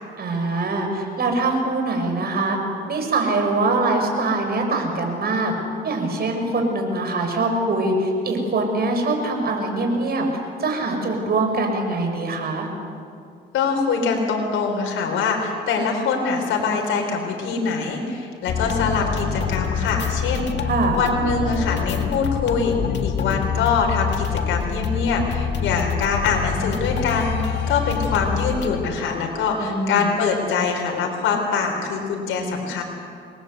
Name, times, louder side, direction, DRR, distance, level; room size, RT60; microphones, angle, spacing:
voice 1, 0.2-2.6 2.9-5.5 5.8-10.3 10.6-12.7 20.7-21.0 29.6-30.1, right 2 dB, 50° right, 3 dB, 6.6 m, -23 dB
voice 2, 13.5-20.7 20.9-22.7 23.0-32.8, left 5 dB, 80° left, 1 dB, 4.3 m, -23 dB
sound 1, 18.5-28.8, left 7 dB, 65° left, 2.0 m, -26 dB
27.0 x 21.0 x 8.2 m, 2.3 s
cardioid pair, 90°, 20 cm